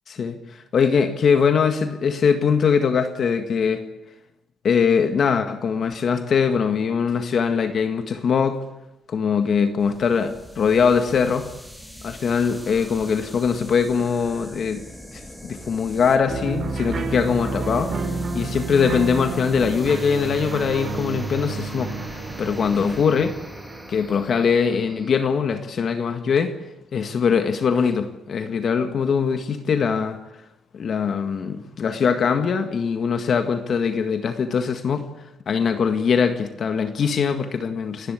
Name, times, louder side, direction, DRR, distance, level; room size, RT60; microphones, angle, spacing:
voice 1, 0.7-3.8 4.6-8.6 9.1-11.5 12.0-14.9 15.4-18.0 18.3-22.0 22.4-23.4 23.9-26.6 26.9-30.2 30.7-35.0 35.5-38.1, left 6 dB, 55° left, 1.8 m, -22 dB
sound 1, 9.8-25.1, equal, 5° left, 3.2 m, -41 dB
sound 2, 16.3-24.6, right 3 dB, 45° right, 5.8 m, -30 dB
29.0 x 11.5 x 8.4 m
cardioid pair, 90°, 0 cm